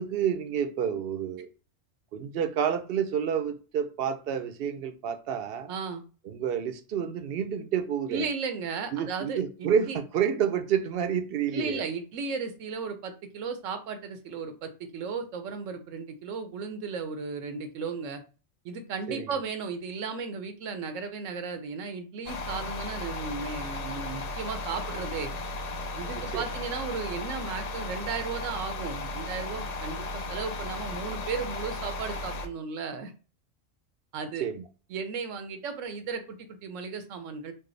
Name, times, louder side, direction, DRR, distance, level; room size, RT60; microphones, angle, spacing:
voice 1, 0.0-1.5 2.1-5.7 6.3-8.3 8.9-11.8 19.1-19.3 26.2-26.5 34.4-34.6, right 8 dB, 60° right, 0.7 m, -29 dB
voice 2, 5.7-6.0 8.1-10.0 11.5-18.2 18.6-25.3 25.9-33.1 34.1-34.4 34.9-37.5, right 5 dB, 90° right, 1.0 m, -35 dB
sound 1, 22.3-32.5, left 2 dB, 75° left, 0.3 m, -35 dB
4.5 x 2.2 x 3.2 m
omnidirectional pair, 1.3 m